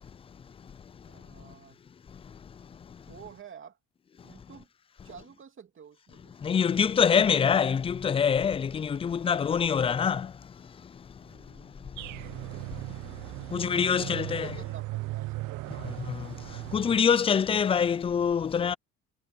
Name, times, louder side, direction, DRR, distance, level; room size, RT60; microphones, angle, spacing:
voice 1, 1.1-1.9 3.1-3.8 4.2-4.7 5.0-7.4 9.3-10.0 11.2-12.1 13.7-15.9, right 7 dB, 40° right, 2.7 m, -50 dB
voice 2, 6.4-10.3 13.5-14.5 16.7-18.7, left 7 dB, 20° left, 0.3 m, -24 dB
sound 1, 12.0-17.0, right 20 dB, 75° right, 0.6 m, -37 dB
cardioid pair, 105°, 31 cm